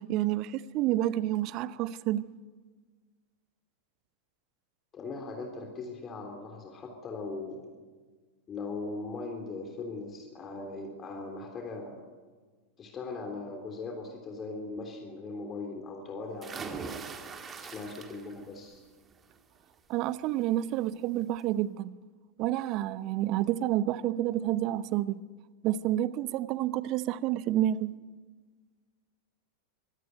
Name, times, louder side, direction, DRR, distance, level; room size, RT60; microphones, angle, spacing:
voice 1, 0.0-2.2 19.9-21.9 22.4-25.2 25.6-28.0, right 13 dB, 40° right, 0.8 m, -29 dB
voice 2, 4.9-7.7 8.5-12.0 12.8-17.0 17.6-18.8, left 3 dB, 25° left, 3.4 m, -39 dB
sound 1, 16.4-18.5 18.9-19.3 20.7-20.8 21.2-21.3, right 5 dB, 20° right, 2.1 m, -41 dB
23.5 x 17.0 x 9.3 m
figure-of-eight pair, 90°, 0 cm